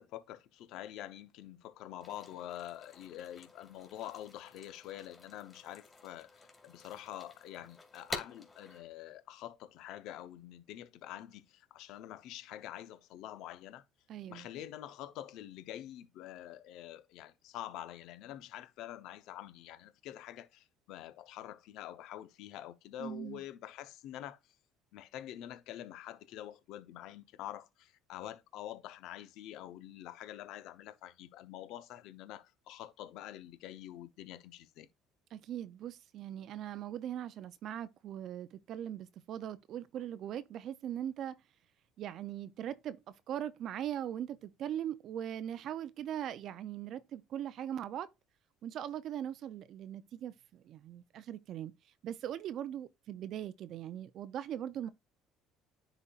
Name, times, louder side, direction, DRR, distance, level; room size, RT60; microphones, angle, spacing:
voice 1, 0.0-13.8 14.3-24.4 24.9-34.9, left 12 dB, 70° left, 0.7 m, -46 dB
sound 1, 2.0-8.8, left 3 dB, 20° left, 2.4 m, -49 dB
voice 2, 14.1-14.5 23.0-23.4 35.3-41.4 42.0-48.1 48.6-51.7 52.0-54.9, right 10 dB, 60° right, 0.4 m, -40 dB
9.9 x 4.1 x 2.4 m
supercardioid pair, 85°, 0 cm